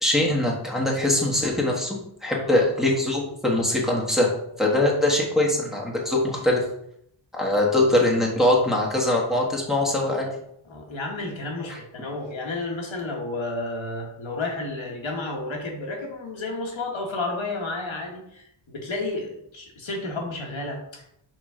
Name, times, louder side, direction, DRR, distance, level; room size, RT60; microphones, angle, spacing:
voice 1, 0.0-4.3 4.6-6.6 7.3-10.3 11.7-11.8, left 1 dB, ahead, -3 dB, 1.4 m, -22 dB
voice 2, 2.3-2.7 4.6-4.9 10.6-21.1, left 2 dB, 70° left, 0 dB, 1.6 m, -32 dB
6.0 x 3.9 x 4.9 m, 0.74 s
wide cardioid pair, 130°, 49 cm